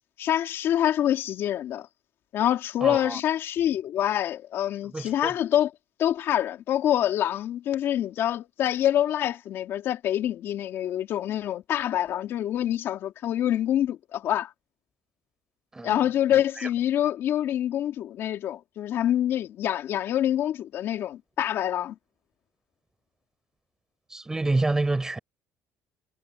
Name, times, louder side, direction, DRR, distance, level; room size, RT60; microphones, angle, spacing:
voice 1, 0.2-1.9 2.3-5.7 6.0-14.5 15.8-21.9, left 11 dB, 50° left, 2.5 m, -26 dB
voice 2, 2.8-3.2 4.9-5.3 15.7-16.1 16.6-16.7 24.1-25.2, right 2 dB, 10° right, 5.6 m, -28 dB
cardioid pair, 150°, 5 cm